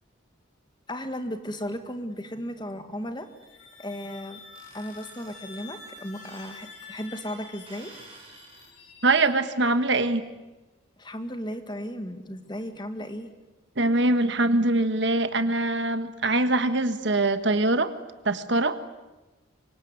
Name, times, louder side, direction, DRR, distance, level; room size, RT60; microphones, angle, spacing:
voice 1, 0.9-3.3 3.8-4.4 4.7-7.9 11.0-13.3, equal, 20° left, 8 dB, 1.8 m, -35 dB
sound 1, 3.1-9.8, left 4 dB, 60° left, 6.4 m, -48 dB
sound 2, 4.5-5.6 6.1-6.6 7.7-8.7, right 3 dB, 30° right, 5.7 m, -51 dB
voice 2, 9.0-10.3 13.8-17.9 18.2-18.8, right 2 dB, 65° right, 10 dB, 1.6 m, -23 dB
25.0 x 24.0 x 9.6 m, 1.1 s
head